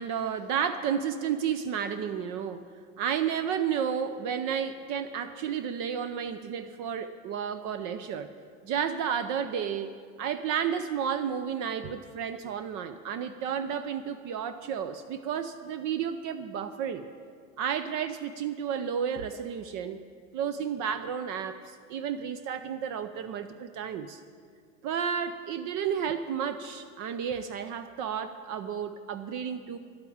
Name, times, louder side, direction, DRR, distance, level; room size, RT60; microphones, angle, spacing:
voice 1, 0.0-2.6 3.0-8.3 8.6-9.9 10.2-17.1 17.6-20.0 20.3-24.2 24.8-29.8, right 8 dB, 45° right, 10 dB, 0.6 m, -32 dB
11.5 x 8.2 x 8.6 m, 2.1 s
supercardioid pair, 120°, 42 cm